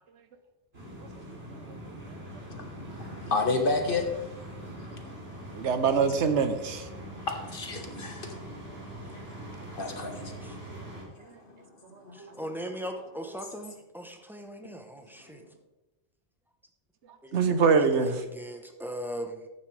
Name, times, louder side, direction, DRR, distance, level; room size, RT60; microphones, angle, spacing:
sound 1, 0.7-11.0, right 1 dB, 65° right, 3.1 m, -43 dB
voice 1, 2.5-4.0 7.3-8.3 9.8-10.3 11.5-11.6 12.0-12.2, left 3 dB, 55° left, 4 dB, 1.5 m, -30 dB
voice 2, 5.5-6.8 12.2-12.3 17.3-18.2, right 5 dB, 90° right, 9 dB, 1.2 m, -24 dB
voice 3, 12.1-15.4 17.2-17.5 17.8-19.5, equal, ahead, 4 dB, 0.8 m, -39 dB
11.0 x 8.9 x 3.3 m, 1.0 s
omnidirectional pair, 1.1 m